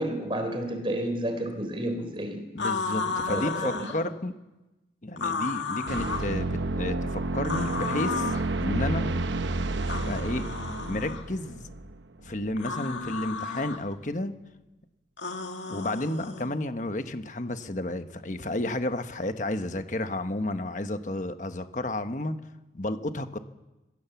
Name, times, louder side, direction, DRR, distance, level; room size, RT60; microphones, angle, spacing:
voice 1, 0.0-2.4 3.3-3.9, right 1 dB, 30° right, 7 dB, 3.8 m, -31 dB
voice 2, 2.5-4.3 5.0-8.3 8.6-9.1 9.9-10.5 10.8-11.6 12.2-14.4 15.7-22.4 22.7-23.4, left 1 dB, 40° left, 9 dB, 1.2 m, -31 dB
sound 1, 2.6-4.0 5.2-6.3 7.4-8.5 9.8-11.2 12.6-13.8 15.2-16.5, left 4 dB, 80° left, 2.0 m, -33 dB
sound 2, 5.9-12.5, right 2 dB, 75° right, 0.9 m, -30 dB
23.5 x 16.0 x 7.1 m, 1.0 s
head